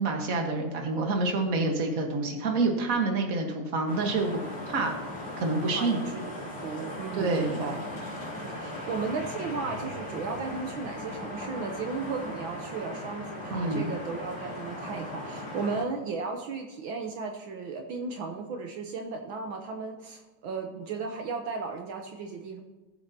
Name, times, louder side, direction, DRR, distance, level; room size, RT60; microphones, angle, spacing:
voice 1, 0.0-4.4 4.7-5.0 5.4-6.0 7.1-7.6 13.5-13.9, right 3 dB, 45° right, 2 dB, 1.8 m, -27 dB
sound 1, 3.9-15.8, left 1 dB, 50° left, 3.2 m, -38 dB
voice 2, 5.7-7.8 8.5-22.6, right 4 dB, 70° right, 3 dB, 1.6 m, -35 dB
18.5 x 7.6 x 2.9 m, 1.2 s
omnidirectional pair, 2.3 m